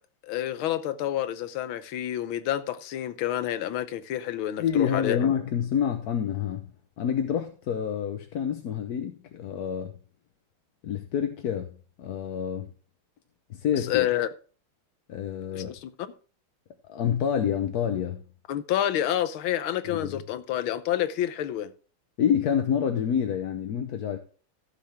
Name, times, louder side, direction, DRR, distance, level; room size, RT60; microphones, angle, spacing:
voice 1, 0.3-5.3 13.7-14.3 15.5-15.9 18.5-21.7, left 12 dB, 75° left, 1.6 m, -29 dB
voice 2, 4.6-6.7 7.0-9.9 10.8-12.7 13.5-14.1 15.1-15.7 16.9-18.2 19.9-20.2 22.2-24.2, left 8 dB, 60° left, 1.2 m, -27 dB
15.5 x 7.6 x 3.4 m
omnidirectional pair, 2.3 m